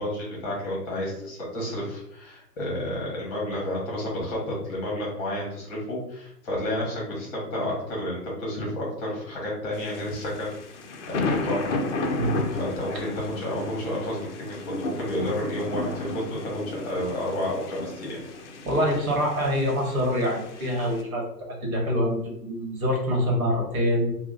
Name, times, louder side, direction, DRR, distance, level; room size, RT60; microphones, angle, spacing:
voice 1, 0.0-10.5 11.1-11.7 12.6-18.2, left 1 dB, 25° left, -4 dB, 1.0 m, -31 dB
sound 1, 9.7-21.0, left 2 dB, 45° left, 0.5 m, -33 dB
voice 2, 18.6-24.1, equal, 55° right, -1 dB, 1.3 m, -25 dB
2.9 x 2.2 x 3.8 m, 0.80 s
figure-of-eight pair, 125°, 50 cm